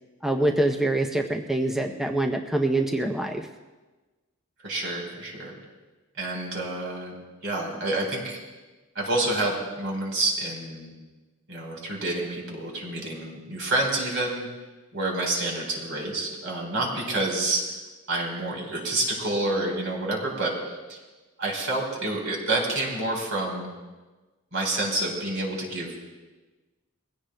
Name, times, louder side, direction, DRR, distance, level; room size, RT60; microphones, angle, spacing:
voice 1, 0.2-3.5, right 1 dB, ahead, 2 dB, 0.6 m, -25 dB
voice 2, 4.6-5.5 6.2-7.1 7.4-8.4 9.0-10.9 11.5-14.5 14.9-17.6 18.1-20.5 20.9-21.0 21.4-23.7 24.5-26.0, right 2 dB, 65° right, -1 dB, 4.1 m, -28 dB
22.0 x 16.5 x 2.2 m, 1.2 s
head